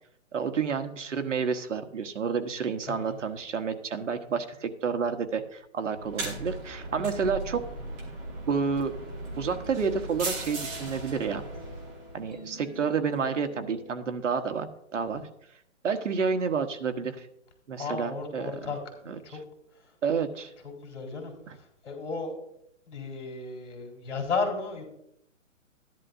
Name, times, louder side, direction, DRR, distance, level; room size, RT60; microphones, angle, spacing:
voice 1, 0.3-7.6 8.5-8.9 9.4-11.4 12.1-14.7 14.9-15.2 15.8-17.3 17.7-18.5 19.1-19.2 20.0-20.5, right 6 dB, 70° right, 7 dB, 1.3 m, -29 dB
voice 2, 2.9-3.2 15.2-15.3 17.8-18.8 19.0-19.4 19.7-19.9 20.6-22.3 22.9-24.8, left 4 dB, 60° left, 1 dB, 4.1 m, -34 dB
sound 1, 6.0-12.3, right 2 dB, 10° right, 1.2 m, -38 dB
sound 2, 8.2-14.6, left 2 dB, 20° left, 0.7 m, -48 dB
13.5 x 11.0 x 2.7 m, 0.75 s
hypercardioid pair, 170°, 38 cm